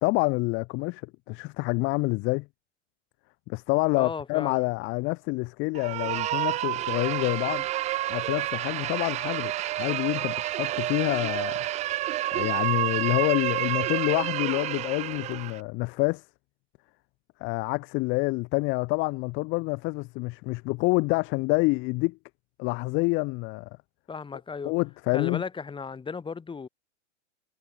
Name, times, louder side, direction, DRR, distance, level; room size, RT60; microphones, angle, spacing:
voice 1, 0.0-2.5 3.5-7.7 8.1-11.6 12.3-16.3 17.4-22.2 22.6-23.7 24.6-25.4, left 25 dB, 35° left, 0.8 m, -27 dB
voice 2, 4.0-4.6 24.1-24.7 25.1-26.7, left 5 dB, 15° left, 7.3 m, -35 dB
sound 1, 5.7-15.6, right 14 dB, 20° right, 0.5 m, -29 dB
hypercardioid pair, 125°, 36 cm